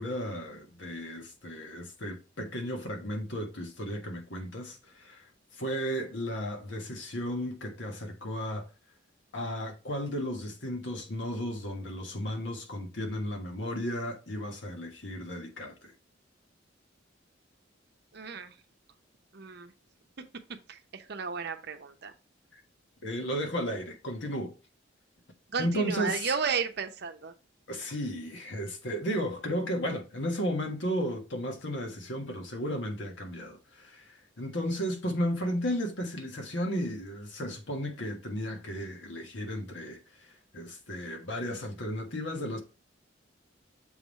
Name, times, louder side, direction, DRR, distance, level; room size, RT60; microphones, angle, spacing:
voice 1, 0.0-8.7 9.3-15.9 22.5-22.6 23.0-24.5 25.6-26.3 27.7-42.6, equal, 70° left, 1.4 m, -34 dB
voice 2, 18.1-18.5 19.3-19.7 20.7-22.1 25.5-27.3, right 5 dB, 60° right, 0.7 m, -33 dB
7.1 x 3.5 x 4.1 m
head